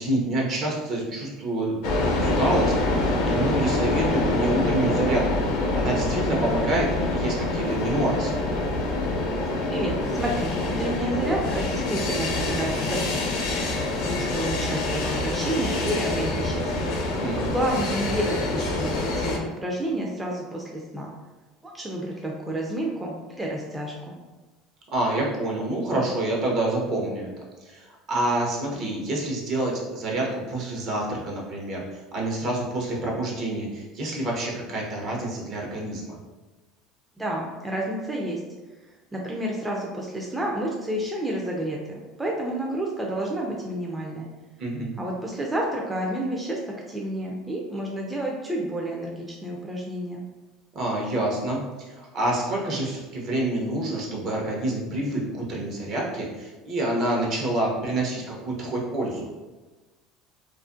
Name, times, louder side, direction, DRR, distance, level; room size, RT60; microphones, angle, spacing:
voice 1, 0.0-1.8 2.0-5.5 5.7-8.4 17.2-17.5 24.9-27.3 27.6-36.2 44.6-44.9 50.7-59.3, right 1 dB, 50° right, -2 dB, 0.7 m, -27 dB
sound 1, 1.8-19.4, left 2 dB, 75° left, 0.5 m, -26 dB
voice 2, 9.7-13.3 14.0-16.7 17.3-21.1 21.6-24.2 37.2-38.4 39.1-44.3 45.0-46.6 46.9-50.2, right 1 dB, 10° right, -2 dB, 0.4 m, -30 dB
2.4 x 2.1 x 2.4 m, 1.2 s
supercardioid pair, 95°, 0 cm